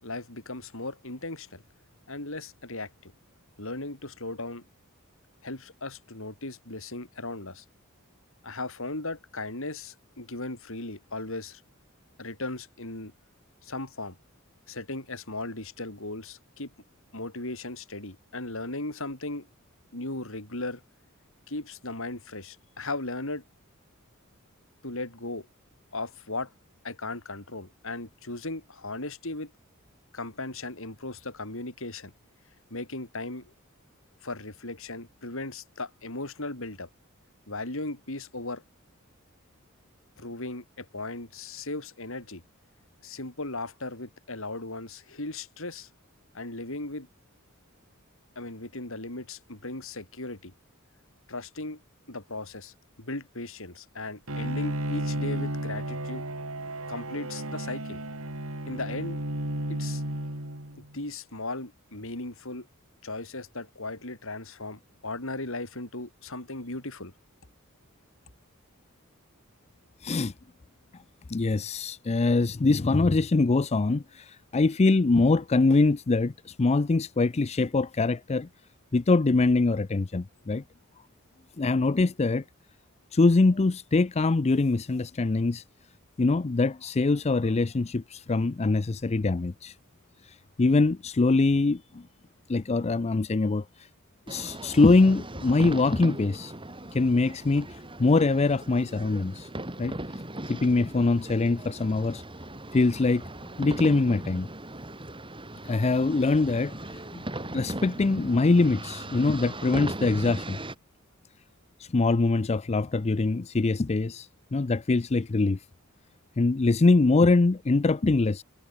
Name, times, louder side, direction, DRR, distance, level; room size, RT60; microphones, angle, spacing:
voice 1, 0.0-1.6 2.1-3.1 3.6-4.6 5.4-7.6 8.4-11.6 12.2-13.1 13.6-14.2 14.7-16.7 17.1-19.5 19.9-20.8 21.5-23.4 24.8-25.5 25.9-26.5 26.8-29.5 30.1-32.1 32.7-33.5 34.2-36.9 37.5-38.6 40.2-42.4 43.0-45.9 46.3-47.1 48.4-50.5 51.3-51.8 52.1-56.2 56.9-58.0 58.7-59.2 59.7-60.0 60.9-62.7 63.0-67.1, left 2 dB, 70° left, 5.3 m, -37 dB
Bowed string instrument, 54.3-61.0, right 1 dB, 75° right, 5.1 m, -33 dB
voice 2, 70.0-70.3 71.3-78.5 78.9-80.6 81.6-82.4 83.1-85.6 86.2-89.7 90.2-92.0 92.5-93.9 94.3-96.5 96.9-99.5 99.8-99.9 100.5-102.2 102.7-103.2 103.6-104.5 105.6-107.2 107.5-110.6 111.8-115.6 116.4-118.4, left 3 dB, 30° left, 0.5 m, -23 dB
sound 1, 94.3-110.8, right 1 dB, 25° right, 4.7 m, -38 dB
head